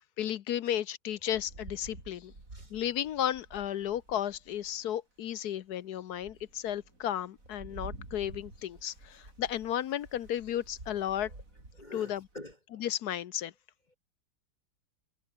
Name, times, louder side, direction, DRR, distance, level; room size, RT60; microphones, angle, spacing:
voice 1, 0.2-2.3 2.7-11.3 11.9-12.2 12.8-13.5, left 11 dB, 70° left, 1.3 m, -34 dB
Rain, 1.3-4.8 5.4-5.5 5.9-12.5, right 2 dB, 50° right, 5.8 m, -50 dB
voice 2, 11.8-12.9 13.9-14.0, left 1 dB, 25° left, 2.9 m, -47 dB
omnidirectional pair, 1.8 m